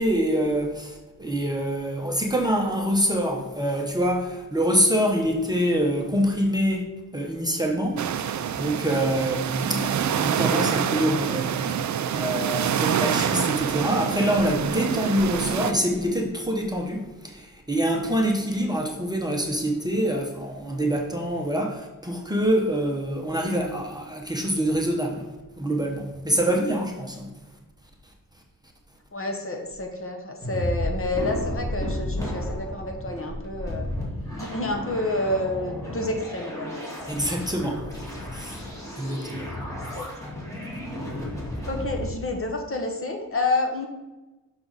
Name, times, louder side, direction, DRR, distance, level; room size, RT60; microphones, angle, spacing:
voice 1, 0.0-6.8 7.1-11.8 12.1-25.3 25.6-27.3 37.1-38.6 39.0-39.5, equal, 10° right, 0 dB, 0.8 m, -25 dB
sound 1, 8.0-15.7, right 8 dB, 55° right, 0.4 m, -26 dB
voice 2, 29.1-33.9 34.4-36.8 39.9-40.1 41.7-43.9, left 2 dB, 40° left, 3 dB, 1.0 m, -29 dB
sound 2, 30.4-42.0, left 1 dB, 10° left, 1.9 m, -33 dB
6.1 x 5.7 x 3.9 m, 1.1 s
wide cardioid pair, 125°, 35 cm